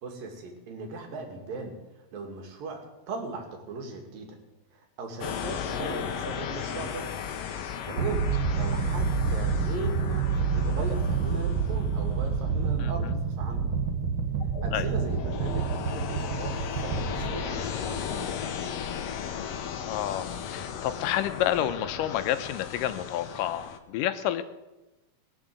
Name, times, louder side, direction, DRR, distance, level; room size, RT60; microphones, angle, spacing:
voice 1, 0.0-4.4 4.7-7.1 7.8-13.7 14.6-18.3, right 3 dB, 85° right, 3 dB, 3.9 m, -38 dB
sound 1, 5.2-23.8, left 7 dB, 65° left, 1.6 m, -36 dB
sound 2, 8.0-18.1, right 5 dB, 55° right, 1.5 m, -28 dB
voice 2, 12.8-13.1 14.7-14.9 19.9-24.4, left 11 dB, 80° left, 10 dB, 2.3 m, -30 dB
21.0 x 7.3 x 7.6 m, 1.1 s
omnidirectional pair, 3.9 m